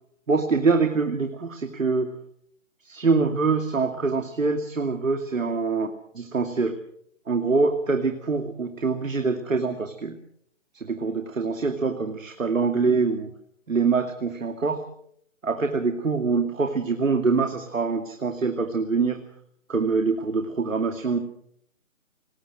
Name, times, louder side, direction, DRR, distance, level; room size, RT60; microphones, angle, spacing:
voice 1, 0.3-2.2 2.8-5.9 6.1-6.8 7.3-10.2 10.7-13.3 13.7-14.8 15.4-19.2 19.7-21.2, right 4 dB, 85° right, 6 dB, 2.6 m, -24 dB
23.5 x 20.0 x 6.3 m, 0.68 s
hypercardioid pair, 180°, 38 cm